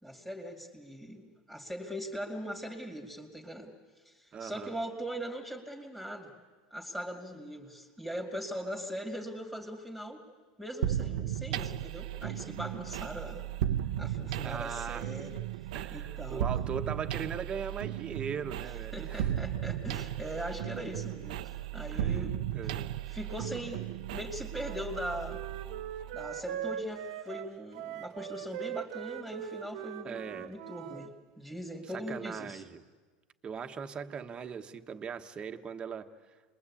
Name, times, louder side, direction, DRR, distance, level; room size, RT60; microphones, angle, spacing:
voice 1, 0.0-3.7 4.0-6.3 6.7-10.2 10.6-15.4 15.9-16.4 18.9-22.4 23.1-25.4 26.1-32.6, equal, ahead, 2.5 m, -40 dB
voice 2, 4.3-4.7 14.4-15.1 15.7-19.3 21.9-22.3 22.5-23.0 30.0-30.6 31.9-32.8 33.4-36.3, right 6 dB, 25° right, 1.3 m, -39 dB
sound 1, 10.8-26.5, right 11 dB, 80° right, 0.7 m, -35 dB
Wind instrument woodwind instrument, 24.5-31.1, right 11 dB, 65° right, 1.2 m, -41 dB
27.0 x 21.5 x 8.6 m
supercardioid pair, 135°, 4 cm